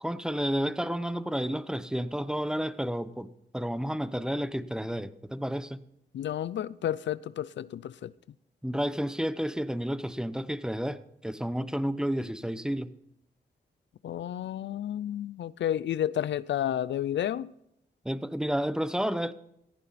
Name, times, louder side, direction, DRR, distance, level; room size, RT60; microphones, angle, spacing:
voice 1, 0.0-5.8 8.6-12.9 18.0-19.3, equal, 5° right, 0.9 m, -31 dB
voice 2, 6.1-8.1 14.0-17.5, left 11 dB, 90° left, 0.5 m, -31 dB
18.0 x 15.5 x 4.2 m
cardioid pair, 70°, 18 cm